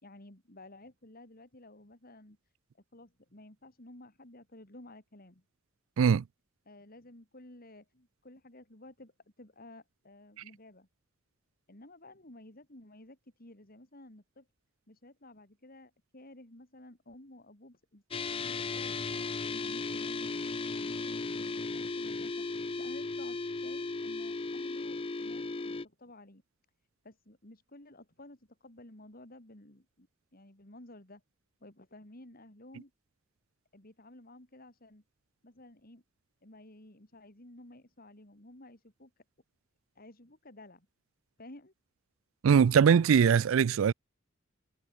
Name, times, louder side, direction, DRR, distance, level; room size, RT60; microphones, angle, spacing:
voice 1, 0.0-2.4 2.9-5.4 6.7-9.1 9.4-10.9 11.7-14.5 14.9-20.3 20.7-22.5 22.8-26.4 27.0-31.2 31.6-32.9 33.7-35.0 35.4-36.0 36.4-39.1 40.0-40.9 41.4-41.7, left 1 dB, 45° left, 3.6 m, -53 dB
sound 1, 18.1-25.9, left 3 dB, 25° left, 0.5 m, -36 dB
voice 2, 42.4-43.9, right 7 dB, 75° right, 0.4 m, -22 dB
head